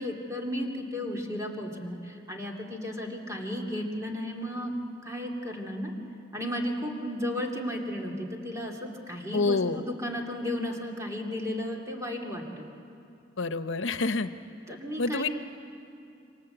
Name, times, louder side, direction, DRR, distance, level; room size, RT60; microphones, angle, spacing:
voice 1, 0.0-4.7 5.0-5.9 6.3-12.7 14.7-15.3, left 1 dB, 15° right, 0 dB, 2.7 m, -34 dB
voice 2, 9.3-9.8 13.4-14.3 15.0-15.3, left 3 dB, 90° left, 10 dB, 0.9 m, -27 dB
27.5 x 25.0 x 8.0 m, 2.7 s
head